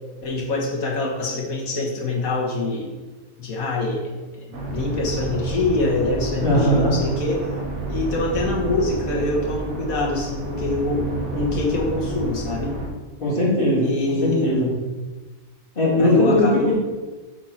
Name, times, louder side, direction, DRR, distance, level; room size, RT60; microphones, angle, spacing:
voice 1, 0.2-2.9 3.4-4.4 4.7-7.4 7.9-11.1 11.3-12.8 13.8-14.5 16.0-16.7, left 2 dB, 75° left, -3 dB, 1.9 m, -25 dB
sound 1, 4.5-12.9, right 3 dB, 80° right, 1.5 m, -29 dB
voice 2, 6.4-6.9 13.2-13.9 14.2-14.7 15.8-16.7, left 1 dB, 40° left, -6 dB, 2.4 m, -19 dB
7.9 x 4.4 x 4.4 m, 1.3 s
omnidirectional pair, 1.5 m